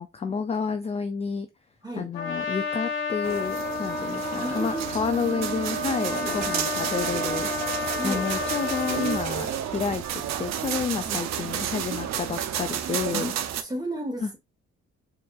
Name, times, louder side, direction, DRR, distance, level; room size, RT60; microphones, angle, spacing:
voice 1, 0.0-1.5 2.0-13.3 14.2-14.3, left 5 dB, 20° left, 0.4 m, -30 dB
Trumpet, 2.1-9.3, left 4 dB, 45° left, 1.3 m, -31 dB
sound 1, 3.2-13.6, right 9 dB, 60° right, 0.5 m, -31 dB
voice 2, 4.4-5.1 6.2-6.5 8.0-8.3 11.0-11.2 13.1-13.3 13.6-14.4, right 1 dB, 15° right, 1.4 m, -33 dB
4.5 x 2.5 x 2.4 m
cardioid pair, 90°, 30 cm